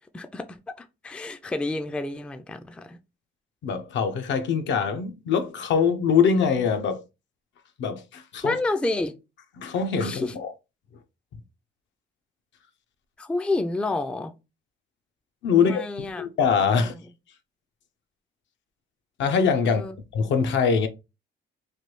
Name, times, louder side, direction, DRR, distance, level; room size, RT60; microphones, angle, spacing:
voice 1, 0.1-3.0 8.4-9.1 10.0-10.4 13.2-14.3 15.5-16.3 16.8-17.0 19.7-19.9, left 2 dB, 5° left, 0.3 m, -29 dB
voice 2, 3.6-7.0 7.8-8.5 9.6-10.5 15.4-16.9 19.2-19.8 20.1-20.9, left 6 dB, 70° left, 0.6 m, -23 dB
3.3 x 2.2 x 3.0 m
cardioid pair, 90°, 20 cm